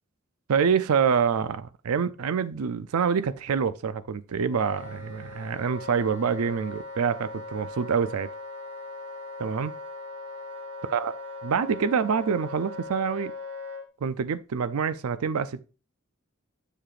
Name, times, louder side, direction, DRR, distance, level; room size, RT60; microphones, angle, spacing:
voice 1, 0.5-8.3 9.4-9.7 10.9-11.1 11.4-13.3 14.0-15.6, right 6 dB, 85° right, 0.4 m, -26 dB
Wind instrument woodwind instrument, 4.5-13.8, left 3 dB, 10° right, 3.3 m, -39 dB
7.6 x 6.6 x 2.5 m
head